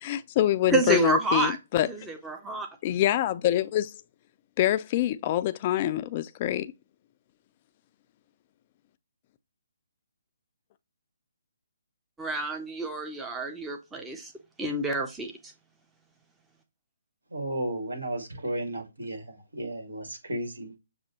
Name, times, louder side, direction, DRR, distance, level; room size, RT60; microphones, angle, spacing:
voice 1, 0.0-1.9 2.8-3.9 4.6-6.7, left 12 dB, 30° left, 0.3 m, -25 dB
voice 2, 0.7-1.6 1.9-2.7 12.2-14.3 14.6-15.5, right 2 dB, 10° right, 0.6 m, -28 dB
voice 3, 17.3-20.8, right 1 dB, 75° right, 1.9 m, -34 dB
7.0 x 2.6 x 2.9 m
figure-of-eight pair, 140°, 0 cm